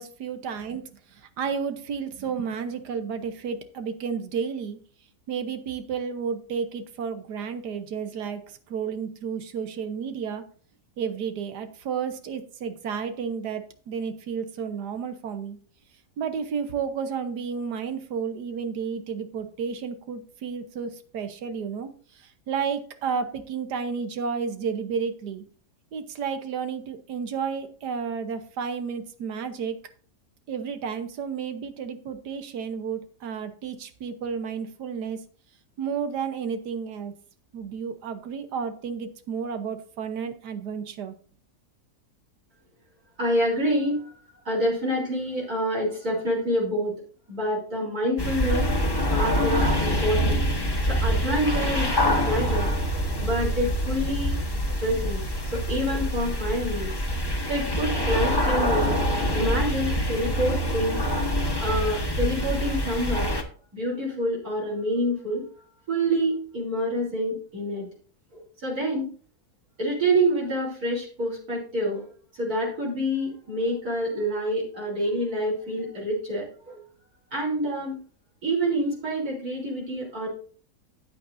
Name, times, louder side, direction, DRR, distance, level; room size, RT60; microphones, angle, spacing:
voice 1, 0.0-4.8 5.3-10.4 11.0-15.6 16.2-25.4 25.9-29.8 30.5-35.2 35.8-37.1 37.5-41.1, right 6 dB, 90° right, 8 dB, 1.6 m, -32 dB
voice 2, 43.2-44.1 44.5-46.9 47.3-48.7 49.1-50.4 50.8-52.7 53.2-54.4 54.8-56.9 57.4-59.0 59.3-61.0 61.6-63.3 63.7-65.4 65.9-67.9 68.3-69.1 69.8-72.0 72.3-76.8 77.3-78.0 78.4-80.3, equal, 65° right, -5 dB, 4.0 m, -27 dB
sound 1, 48.2-63.4, equal, 15° left, 1.2 m, -25 dB
14.0 x 8.9 x 2.6 m, 0.41 s
omnidirectional pair, 1.7 m